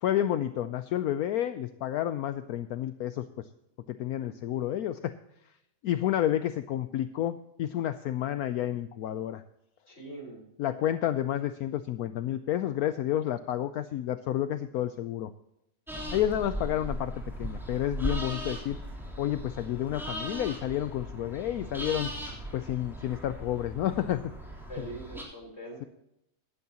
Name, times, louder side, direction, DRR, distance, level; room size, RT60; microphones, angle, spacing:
voice 1, 0.0-3.5 3.9-5.1 5.8-9.4 10.6-15.3 16.1-17.1 17.4-18.8 19.2-22.1 22.5-24.2, left 12 dB, 70° left, 11 dB, 1.0 m, -30 dB
voice 2, 9.9-10.5 24.7-25.9, right 2 dB, 40° left, 1 dB, 4.3 m, -42 dB
sound 1, 15.9-25.2, equal, ahead, 3.3 m, -38 dB
16.0 x 12.0 x 2.9 m, 0.82 s
omnidirectional pair, 1.8 m